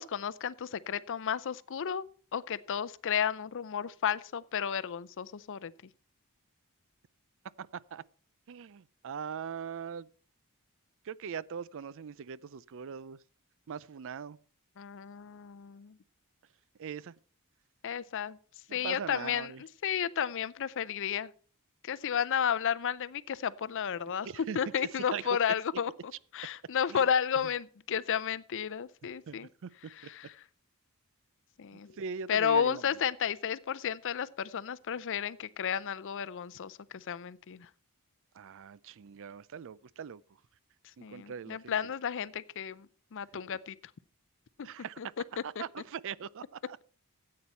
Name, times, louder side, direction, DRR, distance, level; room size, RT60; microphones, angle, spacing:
voice 1, 0.0-2.0 2.3-5.7 14.8-15.9 17.8-18.4 18.7-21.3 21.8-29.5 29.9-30.4 31.6-31.9 32.3-37.7 41.0-42.9 43.1-43.8 45.0-45.1 45.6-45.7, left 8 dB, 60° left, 0.5 m, -32 dB
voice 2, 7.6-8.0 8.5-10.1 11.1-13.2 13.7-14.4 16.8-17.1 18.7-19.6 24.2-24.6 25.1-25.2 26.9-27.0 29.3-29.5 32.0-32.8 38.4-40.2 41.1-41.7 44.6-45.0 45.4-46.8, right 7 dB, 60° right, 0.4 m, -41 dB
14.0 x 8.6 x 4.4 m
head